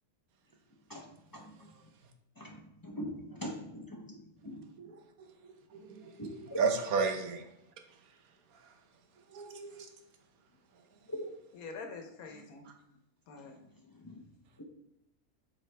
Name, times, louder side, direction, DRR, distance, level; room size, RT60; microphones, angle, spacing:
voice 1, 2.8-4.0 4.5-4.6 6.2-6.6 14.0-14.2, equal, 30° left, 0.4 m, -41 dB
voice 2, 5.4-7.4 9.3-9.9, right 5 dB, 85° right, 1.3 m, -33 dB
voice 3, 11.5-12.7 13.3-13.6, left 4 dB, 85° left, 1.3 m, -45 dB
7.6 x 3.8 x 3.3 m
omnidirectional pair, 1.5 m